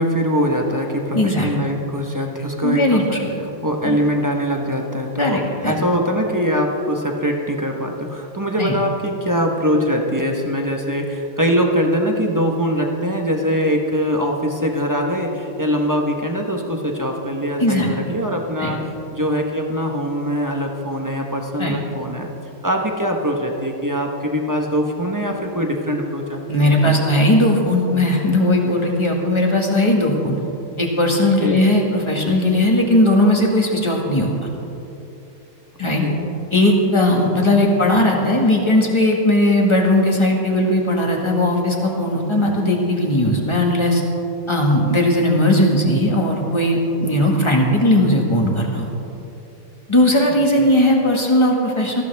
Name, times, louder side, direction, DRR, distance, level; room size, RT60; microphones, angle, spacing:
voice 1, 0.0-3.0 3.6-22.3 22.6-27.0 31.4-31.6 36.0-36.2 47.2-47.5 50.6-50.7, equal, 15° right, 1 dB, 0.6 m, -22 dB
voice 2, 1.1-1.5 2.6-3.3 3.8-4.0 5.2-5.7 8.6-8.8 17.6-17.9 18.6-18.7 21.6-21.8 26.5-30.4 30.8-34.3 35.8-36.0 36.5-44.0 44.5-48.9 49.9-52.0, left 1 dB, 15° left, -1 dB, 1.7 m, -17 dB
20.0 x 14.5 x 3.5 m, 2.9 s
omnidirectional pair, 2.3 m